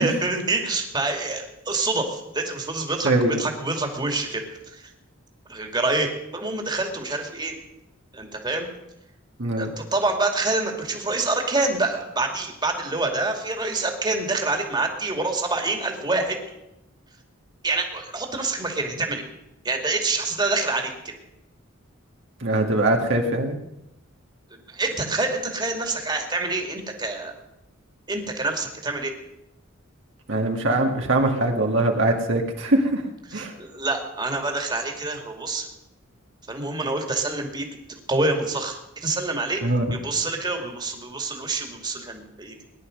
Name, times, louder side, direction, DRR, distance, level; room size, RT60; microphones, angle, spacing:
voice 1, 0.0-3.1 3.4-4.9 5.5-7.6 8.1-8.7 9.6-16.6 17.6-19.2 19.6-20.9 24.7-27.3 28.1-29.1 33.3-35.7 36.5-37.7 38.1-39.6 39.9-42.6, right 3 dB, 20° right, 3 dB, 2.4 m, -26 dB
voice 2, 3.0-3.4 9.4-9.7 22.4-23.6 30.3-33.0 33.3-33.5 39.6-39.9, right 2 dB, 60° right, 2 dB, 1.9 m, -22 dB
19.0 x 11.0 x 6.5 m, 0.87 s
head